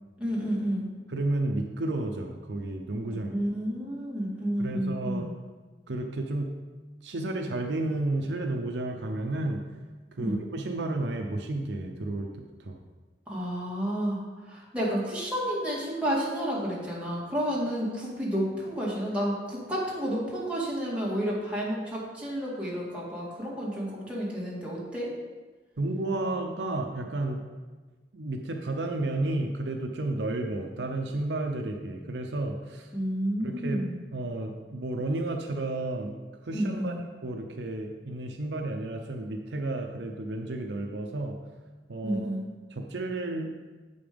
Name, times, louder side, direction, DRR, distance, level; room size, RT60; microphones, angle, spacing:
voice 1, 0.2-0.9 3.3-5.3 10.2-10.4 13.3-25.1 32.9-34.0 36.5-37.0 42.0-42.4, equal, 5° right, -6 dB, 2.2 m, -30 dB
voice 2, 1.1-3.3 4.6-5.3 5.9-6.5 7.0-9.6 10.1-12.3 12.6-12.8 25.8-27.4 28.1-32.9 33.4-33.8 34.1-36.2 36.4-36.9 37.2-41.4 41.9-42.3 42.8-43.5, right 2 dB, 70° right, 3 dB, 0.7 m, -32 dB
7.7 x 5.4 x 5.1 m, 1.3 s
head